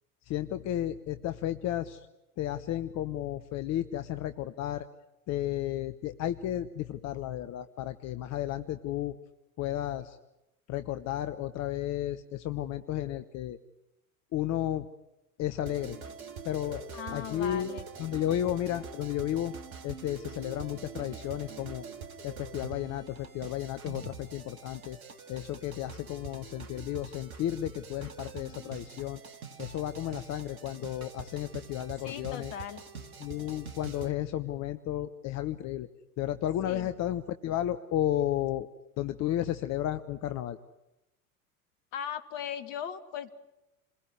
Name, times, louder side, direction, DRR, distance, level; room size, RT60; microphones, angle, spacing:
voice 1, 0.2-2.1 2.4-4.8 5.3-9.1 9.6-10.2 10.7-13.6 14.3-14.9 15.4-16.0 16.4-16.8 17.1-17.7 18.0-19.5 19.8-21.8 22.2-25.0 25.3-29.2 29.6-32.5 33.2-35.9 36.2-38.7 39.0-40.6, left 12 dB, 35° left, 11 dB, 1.1 m, -33 dB
sound 1, 15.6-34.1, right 5 dB, 75° right, 2.2 m, -45 dB
voice 2, 16.9-17.9 32.0-32.8 36.6-36.9 41.9-43.3, left 9 dB, 60° left, 11 dB, 2.2 m, -38 dB
29.0 x 21.5 x 9.5 m, 0.94 s
figure-of-eight pair, 80°, 44 cm